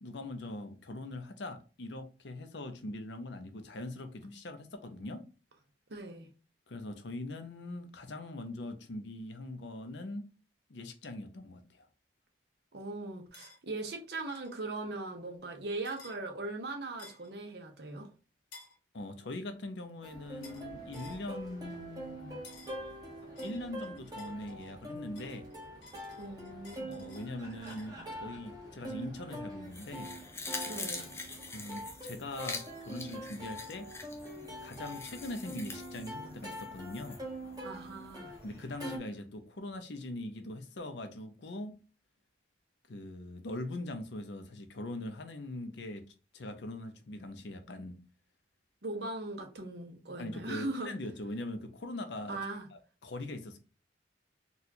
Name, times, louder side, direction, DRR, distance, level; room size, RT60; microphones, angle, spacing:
voice 1, 0.0-5.2 6.7-10.3 10.7-11.9 18.9-22.4 23.4-25.5 26.8-30.1 31.5-33.9 34.6-37.2 38.4-41.7 42.9-46.0 46.3-48.0 50.2-52.4 52.7-53.6, left 2 dB, 70° left, 0.6 m, -42 dB
voice 2, 5.9-6.3 12.7-18.1 26.2-27.0 30.6-31.1 37.6-38.3 48.8-50.9 52.3-52.7, right 2 dB, 60° right, 0.8 m, -39 dB
sound 1, 13.3-13.6 14.3-14.5 15.8-16.2 17.0-17.3 18.5-18.8 20.4-20.7 20.9-21.2 22.4-22.8 23.4-24.8 25.2-27.9, left 3 dB, 85° left, 1.0 m, -55 dB
Plucked string instrument, 20.0-39.0, right 1 dB, 20° right, 1.0 m, -44 dB
sound 2, 29.7-37.2 37.6-37.7, left 3 dB, 15° left, 0.4 m, -44 dB
4.1 x 2.3 x 2.7 m
head